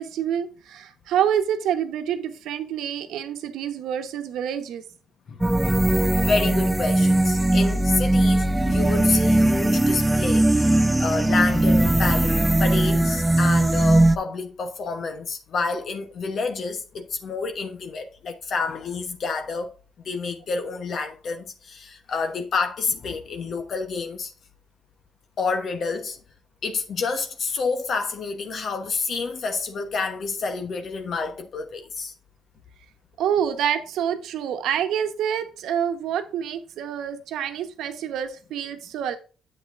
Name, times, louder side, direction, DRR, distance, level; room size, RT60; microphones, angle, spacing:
voice 1, 0.0-4.8 33.2-39.2, right 9 dB, 85° right, 1.1 m, -27 dB
sound 1, 5.4-14.2, right 1 dB, 10° right, 0.4 m, -19 dB
voice 2, 6.2-10.7 11.0-12.3 12.6-19.7 20.0-24.3 25.4-26.2 26.6-32.1, left 4 dB, 55° left, 1.1 m, -28 dB
7.9 x 7.8 x 2.5 m
cardioid pair, 90°, 0 cm